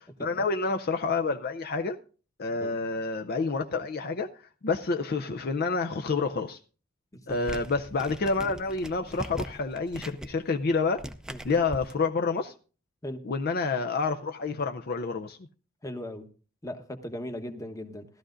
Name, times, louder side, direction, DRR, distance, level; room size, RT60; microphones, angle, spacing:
voice 1, 0.0-2.0 2.4-6.6 7.3-11.0 11.4-12.5 13.2-15.4, left 4 dB, 50° left, 0.5 m, -28 dB
sound 1, 7.3-11.9, equal, 5° right, 0.5 m, -41 dB
voice 2, 15.8-16.3 16.6-18.1, left 1 dB, 15° left, 1.0 m, -37 dB
16.5 x 12.5 x 2.5 m
head